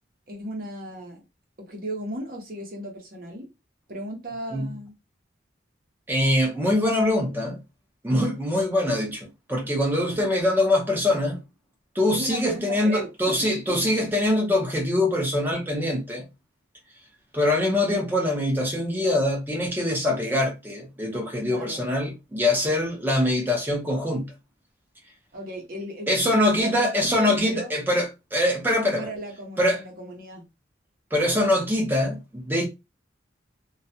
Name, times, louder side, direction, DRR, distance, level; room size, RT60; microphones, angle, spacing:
voice 1, 0.3-1.2 1.7-3.5 3.9-5.0 12.1-13.1 13.7-14.1 21.4-21.9 25.3-27.7 28.8-30.4, right 1 dB, 50° right, 0.8 m, -36 dB
voice 2, 6.1-7.6 8.0-11.4 11.9-16.2 17.3-24.3 26.1-29.1 29.6-29.8 31.1-32.7, left 1 dB, 10° right, 0.6 m, -23 dB
2.3 x 2.1 x 2.7 m
head